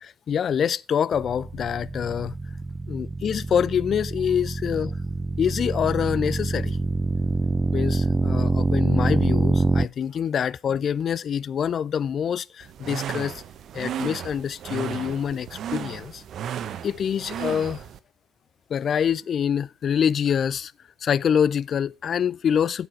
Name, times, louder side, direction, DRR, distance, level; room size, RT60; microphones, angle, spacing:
voice 1, 0.0-2.3 2.9-4.9 5.4-6.8 7.7-13.3 13.7-16.2 16.8-17.8 18.7-20.7 21.0-22.9, left 8 dB, 50° left, 0.4 m, -25 dB
sound 1, 1.1-9.9, right 3 dB, 20° right, 0.4 m, -25 dB
sound 2, 12.6-18.0, right 9 dB, 55° right, 0.8 m, -34 dB
9.9 x 8.2 x 4.6 m
hypercardioid pair, 55°, 0 cm